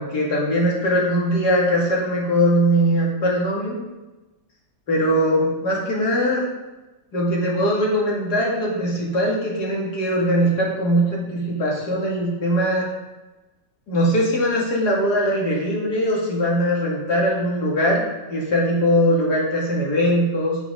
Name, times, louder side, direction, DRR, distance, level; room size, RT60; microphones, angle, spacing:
voice 1, 0.0-3.8 4.9-6.4 7.1-12.9 13.9-20.6, equal, 65° left, -3 dB, 2.8 m, -21 dB
9.1 x 7.8 x 3.7 m, 1.1 s
omnidirectional pair, 1.9 m